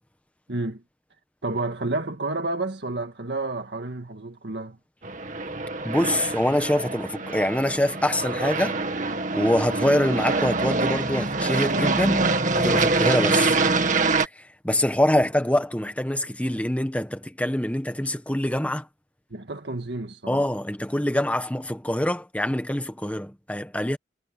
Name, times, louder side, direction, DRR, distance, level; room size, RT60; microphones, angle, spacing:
voice 1, 0.5-0.8 1.4-4.8 19.3-20.4, right 2 dB, 70° right, 1.9 m, -30 dB
Aircraft, 5.0-14.3, right 3 dB, 45° right, 2.2 m, -25 dB
voice 2, 5.8-8.8 9.3-13.6 14.4-18.9 20.3-24.0, left 1 dB, 10° left, 1.3 m, -25 dB
head